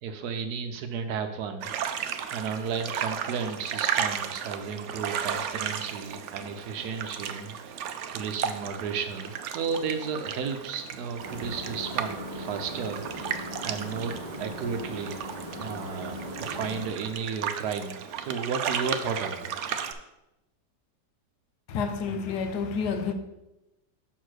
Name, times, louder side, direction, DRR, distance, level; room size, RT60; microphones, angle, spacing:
voice 1, 0.0-7.8 8.1-15.2 15.5-19.5, right 6 dB, 70° right, 1.1 m, -34 dB
sound 1, 1.6-19.9, right 8 dB, 85° right, 0.6 m, -34 dB
sound 2, 11.2-16.9, equal, 25° right, 1.3 m, -39 dB
voice 2, 21.7-23.1, left 5 dB, 70° left, 1.2 m, -29 dB
6.4 x 4.0 x 6.3 m
omnidirectional pair, 1.9 m